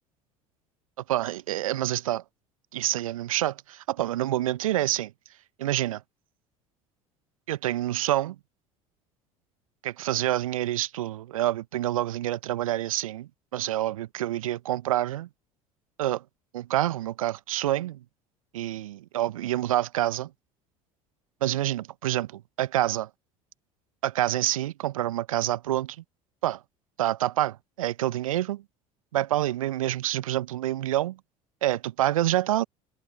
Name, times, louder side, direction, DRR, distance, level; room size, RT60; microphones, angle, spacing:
voice 1, 1.1-2.2 2.7-5.1 5.6-6.0 7.5-8.4 9.8-15.3 16.0-16.2 16.5-18.0 18.5-20.3 21.4-23.1 24.0-26.0 26.4-26.6 27.0-28.6 29.1-31.2 31.6-32.6, right 14 dB, 75° right, 1.1 m, -27 dB
figure-of-eight pair, 65°, 18 cm